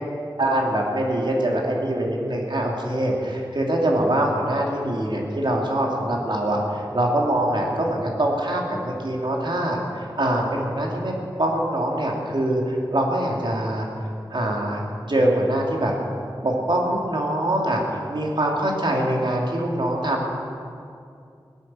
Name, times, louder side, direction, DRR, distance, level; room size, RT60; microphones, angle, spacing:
voice 1, 0.4-11.1 11.4-13.9 14.3-15.9 16.4-20.3, right 1 dB, 60° right, -1 dB, 2.9 m, -23 dB
17.5 x 10.0 x 7.7 m, 2.5 s
wide cardioid pair, 65°, 9 cm